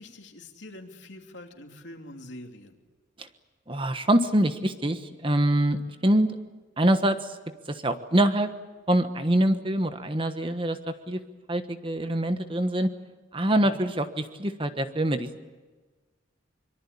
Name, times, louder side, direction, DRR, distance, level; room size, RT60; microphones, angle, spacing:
voice 1, 0.0-2.8 13.5-13.8, left 1 dB, 70° left, 3 dB, 3.1 m, -44 dB
voice 2, 3.7-6.3 6.8-7.2 7.7-8.5 8.9-10.8 11.1-11.2 11.5-12.9 13.3-15.4, right 1 dB, 25° right, 9 dB, 1.3 m, -24 dB
24.5 x 23.5 x 8.6 m, 1.3 s
head